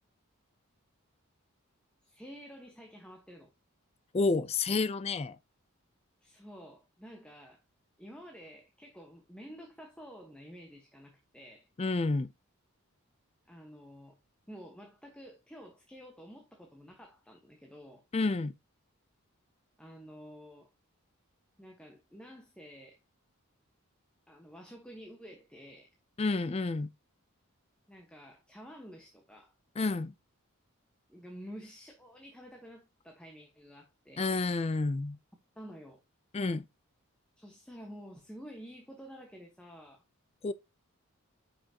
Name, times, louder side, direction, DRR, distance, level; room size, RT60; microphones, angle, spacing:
voice 1, 2.0-3.5 6.2-7.6 8.0-11.7 13.5-14.2 14.5-18.0 19.8-20.7 21.6-23.0 24.3-25.9 27.9-29.5 31.1-34.3 35.6-36.0 37.4-40.0, equal, 5° left, 1.2 m, -50 dB
voice 2, 4.1-5.4 11.8-12.3 18.1-18.5 26.2-26.9 29.8-30.1 34.2-35.2 36.3-36.6 40.4-40.5, left 3 dB, 25° left, 0.4 m, -29 dB
9.6 x 5.9 x 2.9 m
head